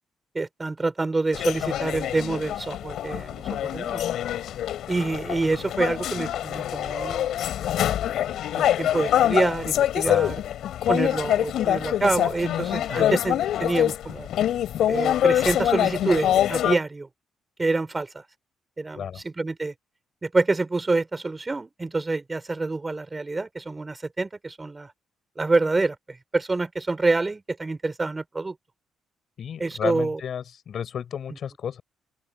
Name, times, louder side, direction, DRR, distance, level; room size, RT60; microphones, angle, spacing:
voice 1, 0.3-4.0 4.9-7.3 8.5-10.3 10.9-14.3 14.9-17.1 17.6-18.2 18.8-19.7 20.2-24.9 25.4-28.6 29.6-30.2, right 3 dB, 20° right, 4.3 m, -27 dB
sound 1, 1.3-16.8, left 11 dB, 75° left, 4.3 m, -25 dB
voice 2, 29.4-31.8, left 8 dB, 60° left, 6.9 m, -32 dB
cardioid pair, 90°, 0 cm